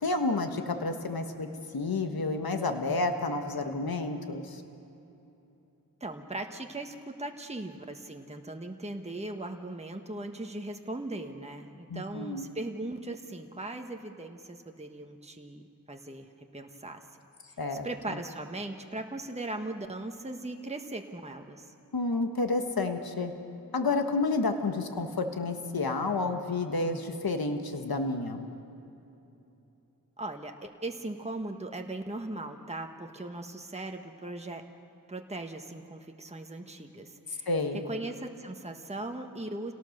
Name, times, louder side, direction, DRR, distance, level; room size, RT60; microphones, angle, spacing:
voice 1, 0.0-1.5 1.7-4.6 11.9-12.5 17.6-17.9 21.9-23.3 23.7-28.4 37.5-37.8, left 3 dB, 75° left, 6 dB, 1.4 m, -30 dB
voice 2, 6.0-15.6 15.9-17.0 17.8-21.7 30.2-34.6 35.1-37.5 37.8-39.7, right 2 dB, 15° right, 3 dB, 1.3 m, -39 dB
27.5 x 18.0 x 6.6 m, 2.9 s
wide cardioid pair, 50°, 37 cm